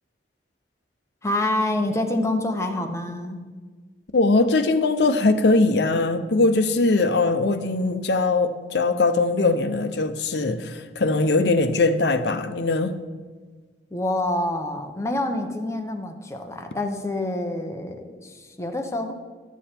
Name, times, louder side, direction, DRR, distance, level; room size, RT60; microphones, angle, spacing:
voice 1, 1.2-3.5 13.9-19.1, left 1 dB, 15° left, 4 dB, 0.8 m, -27 dB
voice 2, 4.1-13.0, left 3 dB, 75° left, 9 dB, 0.6 m, -21 dB
11.5 x 7.1 x 4.4 m, 1.4 s
head